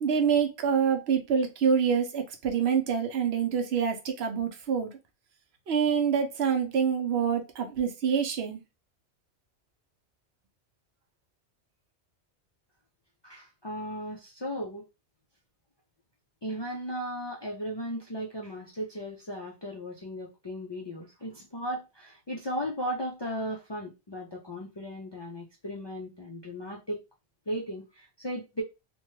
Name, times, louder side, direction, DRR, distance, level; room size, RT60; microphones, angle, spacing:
voice 1, 0.0-4.9 5.7-8.6, right 7 dB, 70° right, 0.9 m, -26 dB
voice 2, 13.2-14.9 16.4-27.0 27.5-28.6, equal, 40° left, 0.4 m, -36 dB
2.9 x 2.2 x 3.0 m
omnidirectional pair, 1.1 m